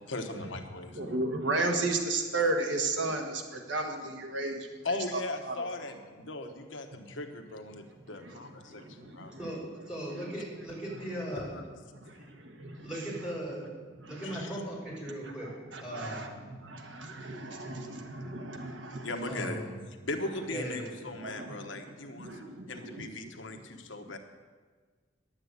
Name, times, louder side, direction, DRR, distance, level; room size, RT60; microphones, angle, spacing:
voice 1, 0.1-1.0 4.8-9.4 11.3-11.6 14.2-14.5 19.0-19.6 20.0-22.3 22.7-24.2, left 2 dB, 85° left, 5 dB, 1.2 m, -38 dB
voice 2, 1.0-3.3 3.7-4.6 4.9-5.6 15.7-16.3 17.0-19.0 21.2-21.5 22.2-22.4 22.8-23.1, right 2 dB, 75° right, 3 dB, 1.4 m, -32 dB
voice 3, 9.4-11.5 12.8-13.7 14.1-15.5 15.8-16.4 19.3-19.9 20.5-20.9, right 1 dB, 5° right, -7 dB, 5.0 m, -38 dB
10.5 x 8.8 x 8.1 m, 1.5 s
head